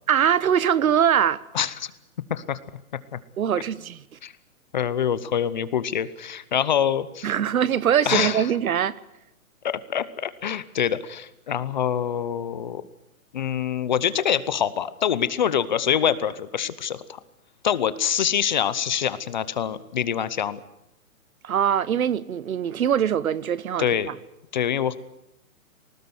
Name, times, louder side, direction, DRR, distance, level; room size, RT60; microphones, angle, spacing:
voice 1, 0.1-1.4 3.4-4.0 7.2-9.0 21.4-24.1, right 9 dB, 75° right, 1.2 m, -22 dB
voice 2, 1.5-1.9 2.3-2.6 3.1-3.2 4.2-4.3 4.7-7.3 8.0-8.5 9.6-12.8 13.3-17.2 17.6-20.6 23.8-24.1 24.5-25.0, left 8 dB, 30° left, 0.8 m, -25 dB
20.5 x 19.0 x 9.6 m
hypercardioid pair, 170°, 43 cm